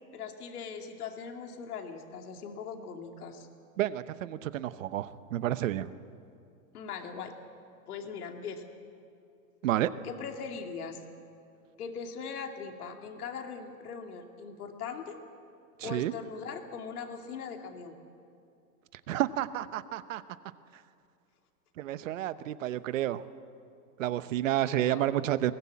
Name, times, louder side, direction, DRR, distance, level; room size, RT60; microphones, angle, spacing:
voice 1, 0.1-3.5 6.7-7.3 7.9-8.6 10.0-11.0 11.8-15.2 15.8-18.0 24.6-25.1, left 6 dB, 80° left, 3 dB, 2.7 m, -40 dB
voice 2, 3.8-5.9 9.6-9.9 15.8-16.1 19.1-20.2 21.8-23.2 24.0-25.5, right 13 dB, 60° right, 14 dB, 0.9 m, -30 dB
21.5 x 19.5 x 8.5 m, 2.5 s
supercardioid pair, 175°, 44 cm